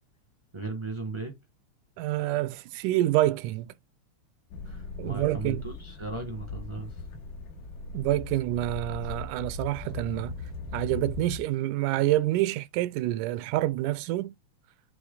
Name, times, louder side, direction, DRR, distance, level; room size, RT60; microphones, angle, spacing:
voice 1, 0.5-1.3 4.6-7.0, right 3 dB, 30° right, 0.5 m, -36 dB
voice 2, 2.0-3.7 5.0-5.6 7.9-10.3 10.7-14.3, right 15 dB, 90° right, 2.0 m, -27 dB
sound 1, 4.5-11.4, left 3 dB, 85° left, 2.9 m, -39 dB
7.7 x 3.3 x 3.9 m
omnidirectional pair, 3.5 m